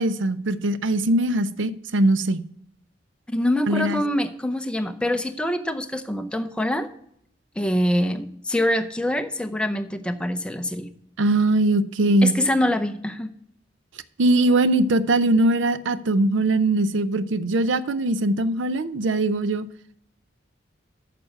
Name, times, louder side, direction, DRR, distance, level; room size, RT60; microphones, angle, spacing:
voice 1, 0.0-2.4 3.7-4.0 11.2-12.3 14.2-19.7, right 2 dB, 80° right, 0.6 m, -21 dB
voice 2, 3.3-6.9 7.6-10.9 12.2-13.3, left 1 dB, 5° left, 0.7 m, -25 dB
9.2 x 6.0 x 6.4 m
head